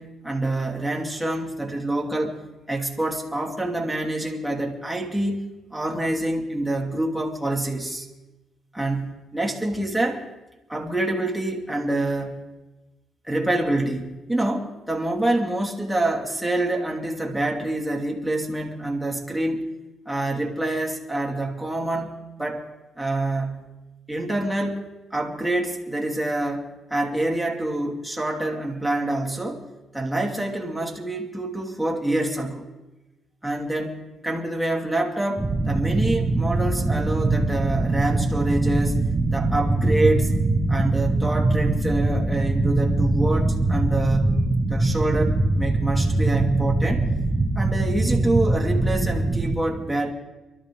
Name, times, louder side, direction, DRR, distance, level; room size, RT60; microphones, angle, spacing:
voice 1, 0.0-2.4 2.7-5.4 5.7-8.1 8.7-10.3 10.7-12.5 13.2-19.7 20.1-22.7 23.0-23.7 24.1-24.8 25.1-29.6 29.9-32.7 33.4-40.3 40.7-44.4 44.7-47.0 47.6-50.1, right 2 dB, ahead, -2 dB, 2.6 m, -26 dB
sound 1, 35.4-49.6, right 2 dB, 20° right, 1.3 m, -22 dB
23.5 x 13.0 x 3.5 m, 1.1 s
cardioid pair, 95°, 0 cm